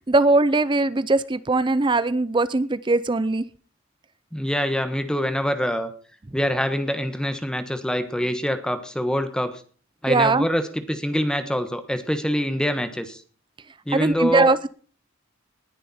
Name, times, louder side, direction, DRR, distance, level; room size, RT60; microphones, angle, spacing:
voice 1, 0.0-3.4 10.1-10.5 13.9-14.7, right 3 dB, 25° right, 16 dB, 0.5 m, -20 dB
voice 2, 4.3-5.9 6.3-9.6 10.0-13.2 13.9-14.7, equal, 5° left, 9 dB, 1.3 m, -25 dB
19.5 x 10.5 x 4.3 m, 0.41 s
head